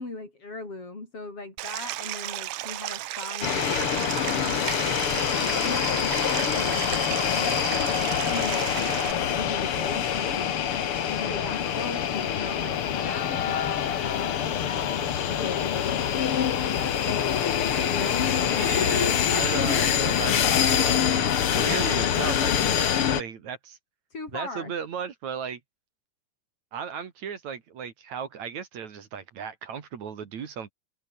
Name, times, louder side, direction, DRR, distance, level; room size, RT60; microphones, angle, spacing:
voice 1, 0.0-5.9 6.2-6.8 7.3-9.0 9.3-10.5 11.2-16.9 17.6-19.3 19.6-19.8 24.1-24.7, left 3 dB, 35° left, 8.0 m, -39 dB
Stream, 1.6-9.1, right 16 dB, 80° right, 1.9 m, -34 dB
sound 1, 3.4-23.2, left 9 dB, 65° left, 1.4 m, -25 dB
voice 2, 18.6-21.3 21.5-23.8 24.3-25.6 26.7-30.7, right 7 dB, 50° right, 3.0 m, -35 dB
omnidirectional pair, 4.8 m